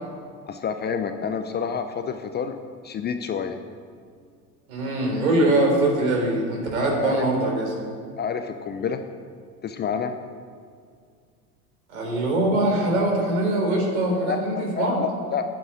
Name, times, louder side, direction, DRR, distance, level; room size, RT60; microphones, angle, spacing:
voice 1, 0.5-2.6 2.8-3.6 7.0-7.3 8.2-9.0 9.6-10.2 14.1-15.4, left 6 dB, 20° left, 8 dB, 0.7 m, -29 dB
voice 2, 4.7-7.7 11.9-15.0, right 1 dB, 65° right, 0 dB, 3.6 m, -22 dB
9.8 x 9.7 x 8.0 m, 2.1 s
figure-of-eight pair, 70°, 45 cm